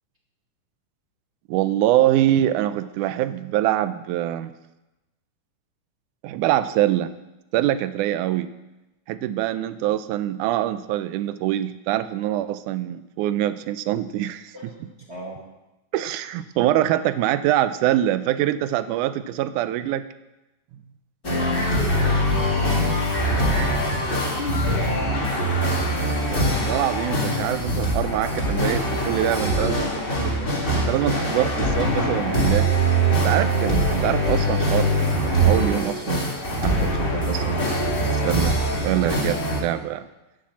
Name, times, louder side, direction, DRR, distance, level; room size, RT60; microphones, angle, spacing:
voice 1, 1.5-4.5 6.2-7.1 7.5-8.5 9.1-14.7 15.9-20.0 26.7-29.9 30.2-30.3 30.9-32.7 33.0-37.6 38.1-40.1, right 13 dB, 80° right, 13 dB, 2.0 m, -24 dB
voice 2, 15.1-15.4 21.2-22.3 26.2-26.8, right 2 dB, 30° right, -3 dB, 1.4 m, -36 dB
sound 1, 21.2-39.6, right 1 dB, 25° left, 1.5 m, -23 dB
10.5 x 7.6 x 7.3 m, 0.99 s
omnidirectional pair, 3.7 m